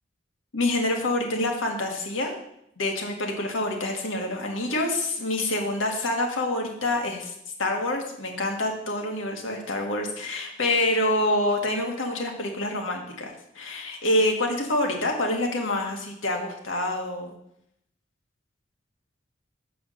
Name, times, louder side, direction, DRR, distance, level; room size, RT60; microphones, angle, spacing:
voice 1, 0.5-2.4 2.8-7.3 7.6-17.3, left 1 dB, 85° left, 2 dB, 1.6 m, -27 dB
7.8 x 5.0 x 6.3 m, 0.77 s
head